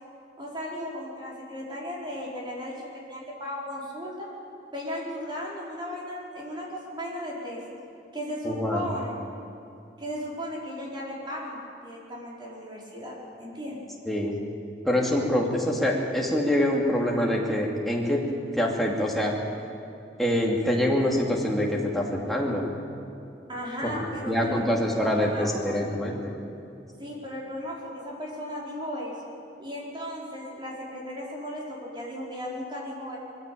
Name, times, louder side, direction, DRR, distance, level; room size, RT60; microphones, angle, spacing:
voice 1, 0.4-4.3 4.7-7.6 8.1-9.1 10.0-13.8 23.5-24.6 25.0-25.8 27.0-29.3 29.6-33.2, equal, 25° right, -3 dB, 4.7 m, -36 dB
voice 2, 8.4-8.9 14.1-14.4 14.8-19.3 20.2-22.6 23.8-24.0 24.3-26.3, left 1 dB, ahead, -2 dB, 2.7 m, -25 dB
21.5 x 15.5 x 8.7 m, 2.7 s
head